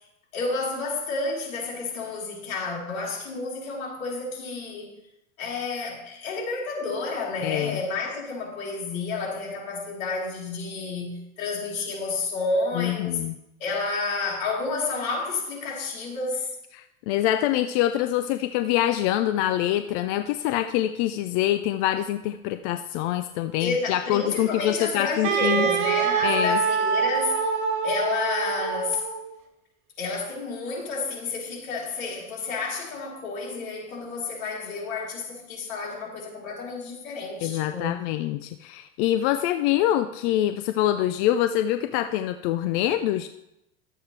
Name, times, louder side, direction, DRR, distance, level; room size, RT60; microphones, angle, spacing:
voice 1, 0.3-4.9 5.4-13.2 13.6-16.5 23.6-27.5 27.8-29.1 30.0-37.9, left 3 dB, 75° left, 3.8 m, -30 dB
voice 2, 7.4-7.8 12.8-13.4 16.7-25.7 26.2-26.6 37.4-43.3, left 12 dB, 50° left, 0.6 m, -25 dB
Wind instrument woodwind instrument, 25.2-29.3, right 6 dB, 45° right, 2.2 m, -25 dB
12.5 x 7.8 x 3.3 m
hypercardioid pair, 110°, 42 cm